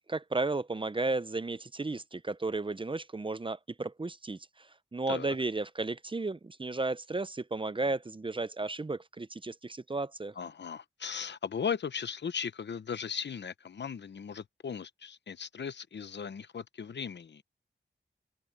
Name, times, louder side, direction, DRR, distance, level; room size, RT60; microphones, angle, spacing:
voice 1, 0.1-4.4 4.9-10.3, right 3 dB, 25° right, 0.7 m, -33 dB
voice 2, 10.4-17.4, left 6 dB, 70° left, 0.9 m, -37 dB
open air
cardioid pair, 60°, 19 cm